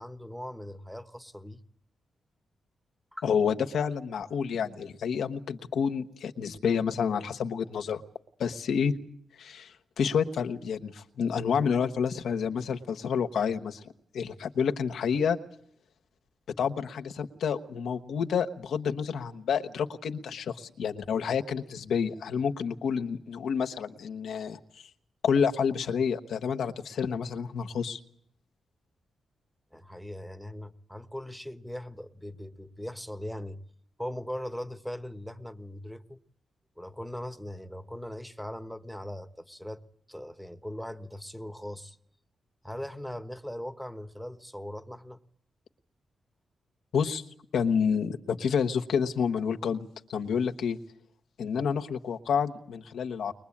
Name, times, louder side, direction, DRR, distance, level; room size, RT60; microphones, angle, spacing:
voice 1, 0.0-1.6 3.1-3.3 29.7-33.6 34.0-36.2 36.8-42.0 42.6-45.2, left 1 dB, ahead, 1.3 m, -40 dB
voice 2, 3.2-8.0 8.4-8.9 9.4-13.8 14.1-15.4 16.6-24.6 25.2-28.0 46.9-47.2 47.5-50.8 51.4-53.3, left 6 dB, 85° left, 1.2 m, -29 dB
22.5 x 21.5 x 8.6 m
cardioid pair, 110°, 0 cm